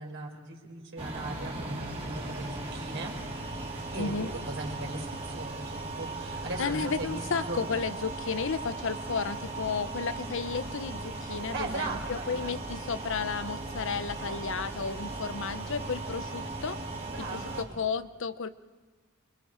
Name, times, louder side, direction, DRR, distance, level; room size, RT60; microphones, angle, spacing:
voice 1, 0.0-3.2 3.9-7.6 11.5-12.6 14.2-14.4 17.0-17.8, right 2 dB, 60° right, 1 dB, 4.3 m, -39 dB
sound 1, 1.0-17.6, right 2 dB, 30° right, 2.9 m, -37 dB
voice 2, 4.0-4.3 6.6-16.8 17.2-18.5, left 5 dB, 60° left, 12 dB, 0.7 m, -33 dB
28.0 x 23.5 x 4.5 m, 1.3 s
head